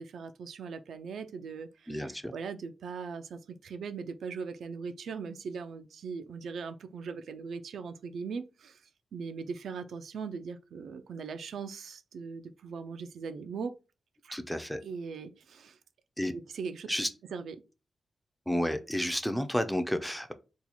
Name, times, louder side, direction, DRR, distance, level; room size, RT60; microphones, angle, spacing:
voice 1, 0.0-8.8 9.1-13.7 14.2-14.4 14.8-15.8 16.3-16.9 17.3-17.6, right 5 dB, 80° right, 0.3 m, -40 dB
voice 2, 1.9-2.3 14.3-14.8 16.2-16.3 16.9-17.1 18.5-20.3, equal, 5° left, 0.4 m, -31 dB
2.8 x 2.2 x 4.0 m
wide cardioid pair, 110°, 0 cm